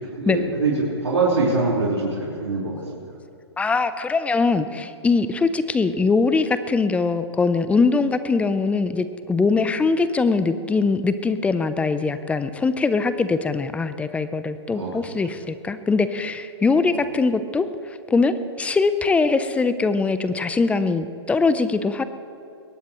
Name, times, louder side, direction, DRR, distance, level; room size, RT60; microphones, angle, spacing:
voice 1, 0.0-2.8 14.7-15.2 16.8-17.0, right 3 dB, 85° right, -7 dB, 4.4 m, -24 dB
voice 2, 3.6-17.7 18.1-22.0, left 4 dB, 10° left, 12 dB, 0.6 m, -22 dB
22.0 x 18.5 x 3.1 m, 2.6 s
hypercardioid pair, 125°, 14 cm